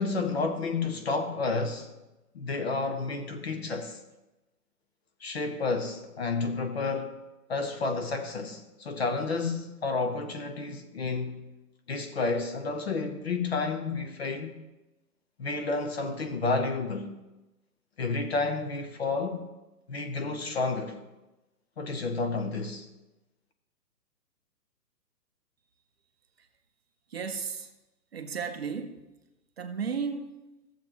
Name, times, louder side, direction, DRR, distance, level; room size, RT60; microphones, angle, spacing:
voice 1, 0.0-1.9 2.3-4.0 5.2-7.2 7.5-11.5 11.9-14.5 15.4-17.1 18.0-19.4 19.9-21.0 21.8-22.9, left 3 dB, 40° left, 0.8 m, -30 dB
voice 2, 27.1-27.7 28.1-29.1 29.6-30.3, right 6 dB, 40° right, 0.7 m, -34 dB
14.5 x 7.2 x 3.0 m
hypercardioid pair, 165°, 48 cm